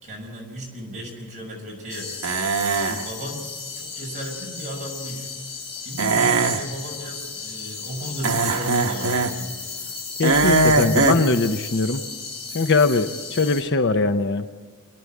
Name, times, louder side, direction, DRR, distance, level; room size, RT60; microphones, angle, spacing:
voice 1, 0.0-2.1 2.7-3.5 3.7-5.3 5.8-9.5, right 1 dB, 35° right, -1 dB, 6.3 m, -35 dB
sound 1, 1.9-13.6, left 4 dB, 25° left, 2.4 m, -35 dB
sound 2, 2.2-3.0 6.0-6.6 8.2-9.3 10.2-11.2, right 3 dB, 85° right, 1.2 m, -20 dB
voice 2, 10.2-12.0 12.5-14.4, left 3 dB, 55° left, 9 dB, 0.8 m, -21 dB
28.5 x 11.0 x 8.6 m, 1.4 s
head